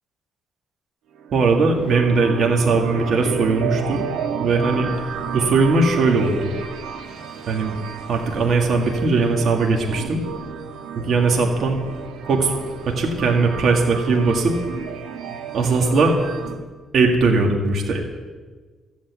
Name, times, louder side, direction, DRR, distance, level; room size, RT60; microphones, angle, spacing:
sound 1, 1.1-16.5, right 7 dB, 90° right, 1.3 m, -32 dB
voice 1, 1.3-4.0 4.4-4.9 5.3-6.5 7.5-7.8 8.1-10.2 11.0-11.8 12.2-12.5 12.9-14.6 15.5-16.2 16.9-18.0, right 3 dB, 60° right, 1 dB, 2.1 m, -19 dB
14.5 x 8.5 x 8.3 m, 1.4 s
cardioid pair, 90°, 0 cm